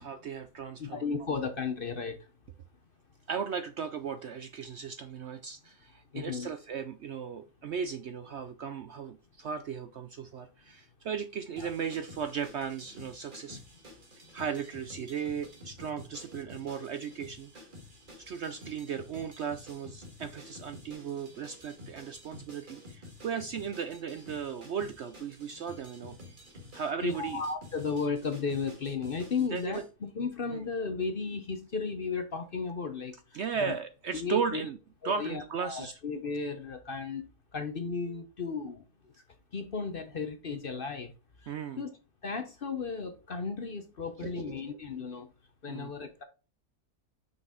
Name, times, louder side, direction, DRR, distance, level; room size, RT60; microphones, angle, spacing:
voice 1, 0.0-1.0 3.3-13.6 14.3-17.7 18.2-26.2 26.7-27.4 29.5-29.8 30.5-30.6 33.3-34.8 35.0-36.0 41.5-41.8 44.2-44.8 45.7-45.9, right 7 dB, 65° right, 0.7 m, -36 dB
voice 2, 0.8-2.2 6.1-6.5 11.6-11.7 27.0-33.7 34.1-34.7 35.0-37.3 37.5-38.8 39.5-41.1 41.4-41.9 42.2-45.3 45.6-46.2, left 4 dB, 45° left, 0.8 m, -34 dB
sound 1, 11.6-29.9, left 1 dB, 35° right, 1.7 m, -50 dB
6.3 x 5.3 x 3.7 m
omnidirectional pair, 1.6 m